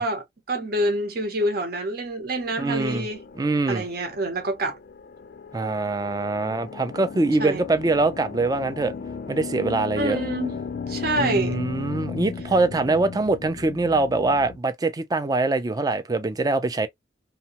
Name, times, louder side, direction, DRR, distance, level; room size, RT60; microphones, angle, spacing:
voice 1, 0.0-3.2 3.7-4.8 7.4-7.6 10.0-10.6 10.9-11.6, right 1 dB, 60° right, 0.9 m, -27 dB
voice 2, 2.6-3.1 3.4-3.9 5.5-8.9 9.3-10.2 11.2-16.9, right 3 dB, 20° right, 0.4 m, -23 dB
sound 1, 2.8-14.6, left 5 dB, 55° left, 0.4 m, -36 dB
2.8 x 2.2 x 2.8 m
head